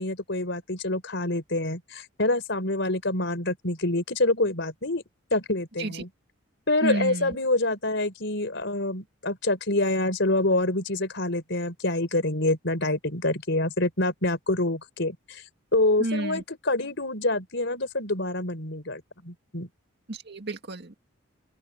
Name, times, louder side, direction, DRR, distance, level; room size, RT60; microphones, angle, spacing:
voice 1, 0.0-5.0 5.3-6.1 6.7-15.4 15.7-19.7, left 2 dB, 60° left, 5.0 m, -26 dB
voice 2, 6.8-7.4 16.0-16.4 20.1-20.9, right 2 dB, 50° right, 2.0 m, -30 dB
open air
head